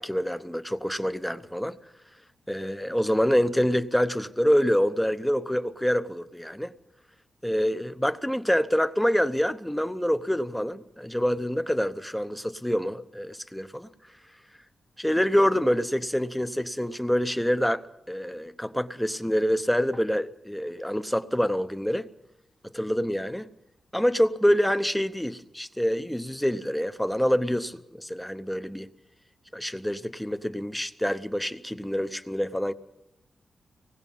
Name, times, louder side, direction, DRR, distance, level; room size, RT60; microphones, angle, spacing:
voice 1, 0.0-1.8 2.5-6.7 7.4-13.9 15.0-22.1 22.6-23.5 23.9-28.9 29.5-32.7, equal, 5° left, 0.8 m, -26 dB
25.0 x 19.0 x 5.4 m
wide cardioid pair, 170°, 0 cm